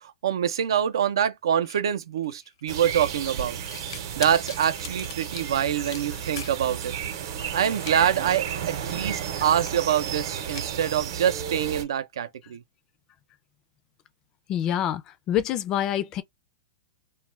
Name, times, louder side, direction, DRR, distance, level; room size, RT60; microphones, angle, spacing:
voice 1, 0.0-3.6 4.2-6.9 7.5-12.6, right 9 dB, 90° right, 0.5 m, -25 dB
sound 1, 1.6-6.9 7.1-8.0 8.3-8.4 8.9-9.0 9.5-10.1 10.4-10.9, left 7 dB, 75° left, 0.7 m, -42 dB
sound 2, 2.7-11.8, right 8 dB, 55° right, 0.8 m, -33 dB
voice 2, 14.5-16.2, left 10 dB, 25° left, 0.4 m, -26 dB
2.3 x 2.2 x 3.1 m
supercardioid pair, 165°, 2 cm